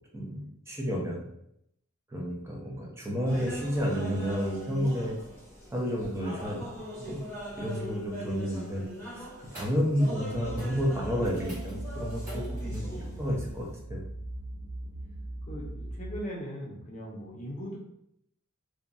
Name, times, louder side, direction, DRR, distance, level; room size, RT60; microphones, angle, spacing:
voice 1, 0.1-1.2 2.1-5.1 5.7-6.7 7.1-7.2 7.5-14.0, equal, 10° right, -2 dB, 0.5 m, -31 dB
sound 1, 3.3-13.7, right 1 dB, 10° left, 0.9 m, -41 dB
sound 2, 9.4-9.9 10.1-10.3 10.6-12.9 15.0-15.1, right 1 dB, 35° right, 1.3 m, -49 dB
sound 3, 10.3-16.2, right 1 dB, 85° right, 0.4 m, -39 dB
voice 2, 12.8-13.2 15.5-17.8, equal, 35° left, -2 dB, 0.6 m, -40 dB
2.9 x 2.2 x 2.5 m, 0.75 s
head